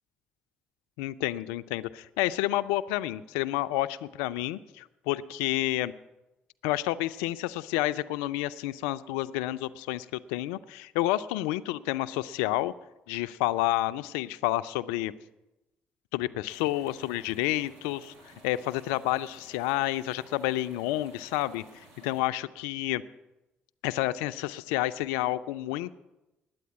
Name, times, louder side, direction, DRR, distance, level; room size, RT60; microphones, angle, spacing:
voice 1, 1.0-5.9 6.6-12.7 13.1-15.1 16.1-23.0 23.8-26.0, left 15 dB, 85° left, 15 dB, 0.4 m, -30 dB
sound 1, 16.5-22.2, right 1 dB, 80° right, 3.3 m, -54 dB
9.6 x 9.1 x 9.2 m, 0.99 s
hypercardioid pair, 55°, 5 cm